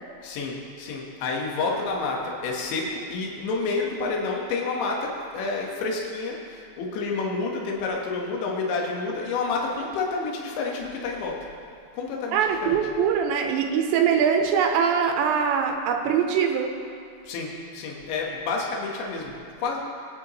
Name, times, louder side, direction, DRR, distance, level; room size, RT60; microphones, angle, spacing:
voice 1, 0.2-11.5 11.9-12.8 17.2-19.8, left 3 dB, 80° left, -1 dB, 3.7 m, -29 dB
voice 2, 12.3-16.8, right 7 dB, 85° right, 4 dB, 3.0 m, -22 dB
23.0 x 9.7 x 3.1 m, 2.4 s
omnidirectional pair, 5.2 m